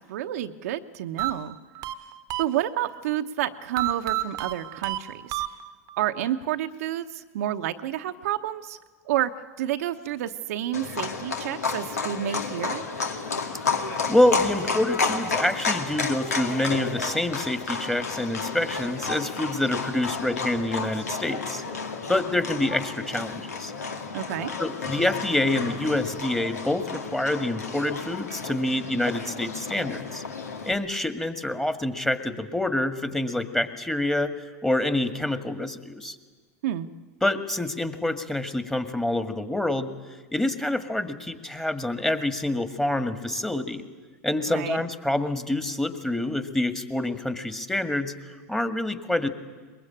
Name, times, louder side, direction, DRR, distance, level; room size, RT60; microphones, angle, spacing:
voice 1, 0.1-1.6 2.4-5.4 6.0-8.8 9.0-9.3 9.6-12.8 24.1-24.5 36.6-36.9 44.5-44.8, right 12 dB, 70° right, 7 dB, 1.0 m, -29 dB
sound 1, 1.2-3.0 3.8-6.0, right 15 dB, 45° right, 1.1 m, -31 dB
Livestock farm animals working animals, 10.7-30.7, left 4 dB, 90° left, 2.2 m, -31 dB
voice 2, 14.1-21.6 22.1-23.7 24.6-30.2 30.7-34.3 34.6-36.2 37.2-39.9 40.3-43.8 44.2-48.1 48.5-49.3, left 1 dB, 5° left, 9 dB, 1.9 m, -26 dB
22.0 x 21.5 x 8.8 m, 1.4 s
hypercardioid pair, 90°, 8 cm